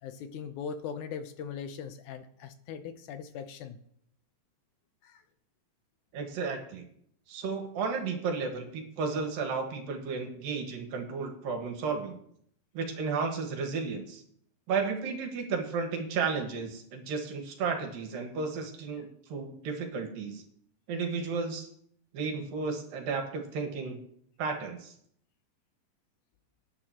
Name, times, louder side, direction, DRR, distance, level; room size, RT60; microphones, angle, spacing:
voice 1, 0.0-3.8 5.0-5.2, left 7 dB, 75° left, 9 dB, 1.9 m, -40 dB
voice 2, 6.1-6.8 7.3-12.2 12.7-14.2 14.7-20.4 20.9-21.7 22.1-24.0 24.4-24.9, right 5 dB, 75° right, 4 dB, 3.2 m, -33 dB
19.5 x 9.5 x 2.9 m, 0.68 s
omnidirectional pair, 4.1 m